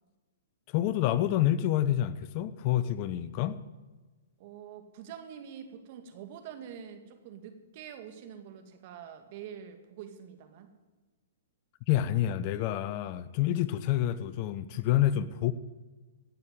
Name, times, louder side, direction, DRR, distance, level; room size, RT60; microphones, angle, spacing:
voice 1, 0.7-3.6 11.9-15.5, left 12 dB, 40° left, 0.8 m, -28 dB
voice 2, 4.4-10.7, right 8 dB, 45° right, 2.3 m, -46 dB
17.5 x 6.6 x 9.4 m
hypercardioid pair, 135°, 0 cm